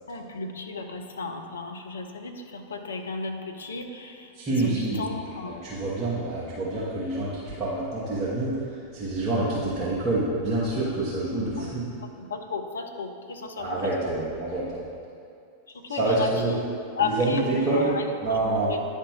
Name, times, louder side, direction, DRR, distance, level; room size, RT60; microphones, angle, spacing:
voice 1, 0.1-4.3 4.6-5.6 11.4-11.7 12.3-13.8 15.9-16.7 17.0-18.0 18.6-18.8, left 4 dB, 70° left, 5 dB, 0.5 m, -33 dB
voice 2, 4.3-7.3 7.6-8.6 8.9-11.9 13.6-14.8 16.0-16.5 17.0-17.9 18.2-18.8, right 2 dB, 30° right, -9 dB, 1.3 m, -27 dB
10.0 x 3.3 x 4.6 m, 2.5 s
figure-of-eight pair, 90°, 0 cm